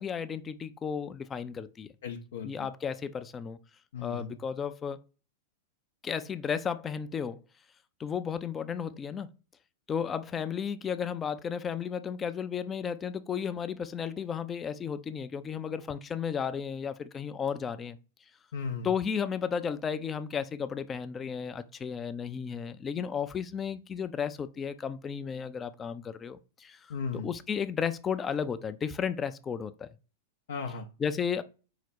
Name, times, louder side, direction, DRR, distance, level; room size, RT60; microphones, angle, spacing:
voice 1, 0.0-1.9 2.4-3.6 4.0-5.0 6.0-7.4 8.0-9.3 9.9-18.0 18.8-26.8 27.1-29.9 31.0-31.4, left 7 dB, 25° left, 0.4 m, -33 dB
voice 2, 2.0-2.5 3.9-4.4 18.5-18.9 26.9-27.3 30.5-30.9, left 5 dB, 75° left, 0.6 m, -36 dB
4.8 x 2.2 x 4.1 m
hypercardioid pair, 110°, 0 cm